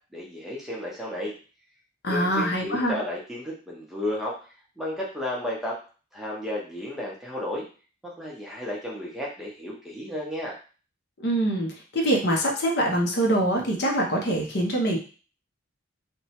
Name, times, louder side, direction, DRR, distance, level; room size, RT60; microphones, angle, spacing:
voice 1, 0.1-1.3 2.1-4.4 4.8-5.8 6.1-7.7 8.0-10.5, left 1 dB, ahead, -4 dB, 0.6 m, -33 dB
voice 2, 2.0-3.0 11.2-15.0, right 1 dB, 55° left, 0 dB, 0.6 m, -24 dB
2.9 x 2.2 x 2.8 m, 0.37 s
head